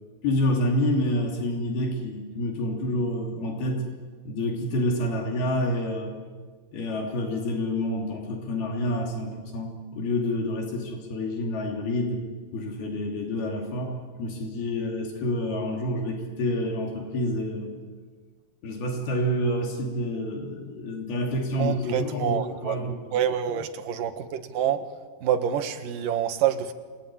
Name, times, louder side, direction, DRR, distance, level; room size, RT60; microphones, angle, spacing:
voice 1, 0.2-3.9 4.3-6.1 6.7-12.2 12.5-17.8 18.6-23.0, left 1 dB, 85° left, 1 dB, 5.0 m, -28 dB
voice 2, 21.6-24.9 25.2-26.7, right 9 dB, 65° right, 7 dB, 3.1 m, -27 dB
28.0 x 21.0 x 9.8 m, 1.5 s
omnidirectional pair, 4.3 m